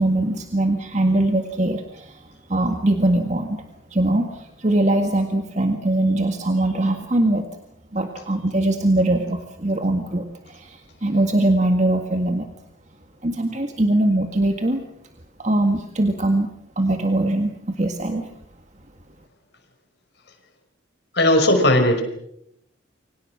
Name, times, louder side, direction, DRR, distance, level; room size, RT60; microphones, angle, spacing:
voice 1, 0.0-2.2 2.5-3.6 3.9-7.4 7.9-12.5 13.2-14.8 15.4-16.5 16.8-18.3, right 1 dB, 35° right, 4 dB, 1.9 m, -21 dB
voice 2, 21.1-22.0, left 1 dB, 55° left, 6 dB, 5.5 m, -16 dB
29.0 x 25.0 x 6.2 m, 0.77 s
head